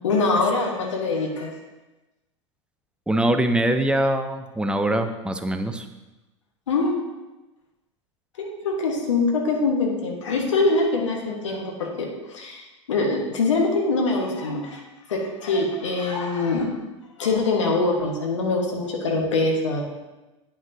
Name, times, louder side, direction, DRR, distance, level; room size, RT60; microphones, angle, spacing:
voice 1, 0.0-1.5 6.7-6.9 8.4-14.8 15.1-16.7 17.2-19.8, left 3 dB, 75° left, 1 dB, 1.5 m, -24 dB
voice 2, 3.1-5.9, right 1 dB, 5° right, 7 dB, 0.6 m, -23 dB
9.0 x 5.8 x 2.7 m, 1.1 s
figure-of-eight pair, 85°, 16 cm